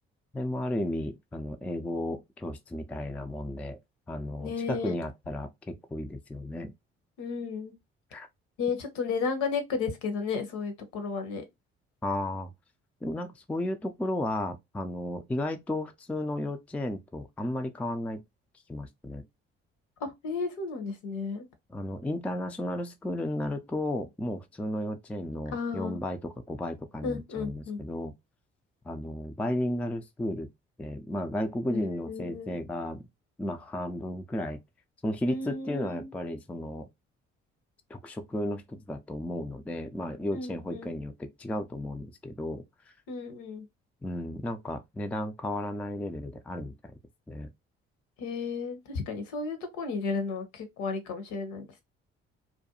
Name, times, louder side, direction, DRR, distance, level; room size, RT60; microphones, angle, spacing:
voice 1, 0.3-3.8 4.1-6.7 8.1-8.3 12.0-12.5 13.0-18.2 18.7-19.2 21.7-28.1 28.9-30.5 30.8-33.0 33.4-34.6 35.0-36.9 37.9-42.6 44.0-47.0 47.3-47.5, left 1 dB, 5° left, 0.4 m, -34 dB
voice 2, 4.4-4.9 7.2-7.7 8.6-11.4 20.0-21.5 25.5-26.0 27.0-27.8 31.7-32.6 35.3-36.1 40.3-41.0 43.1-43.7 48.2-51.8, left 4 dB, 65° left, 0.8 m, -33 dB
2.4 x 2.2 x 2.7 m
figure-of-eight pair, 45°, 32 cm